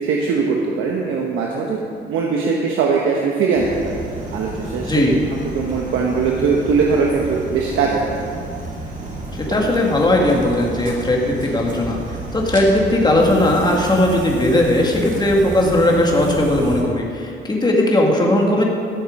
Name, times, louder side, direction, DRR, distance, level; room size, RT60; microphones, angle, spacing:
voice 1, 0.0-1.8 2.1-4.0 4.3-5.0 5.3-8.1, right 5 dB, 85° right, -1 dB, 1.1 m, -20 dB
sound 1, 3.5-16.8, right 2 dB, 40° right, 2.6 m, -31 dB
voice 2, 9.3-18.6, left 1 dB, 20° left, -1 dB, 2.0 m, -18 dB
13.0 x 7.1 x 5.3 m, 2.4 s
cardioid pair, 90°, 20 cm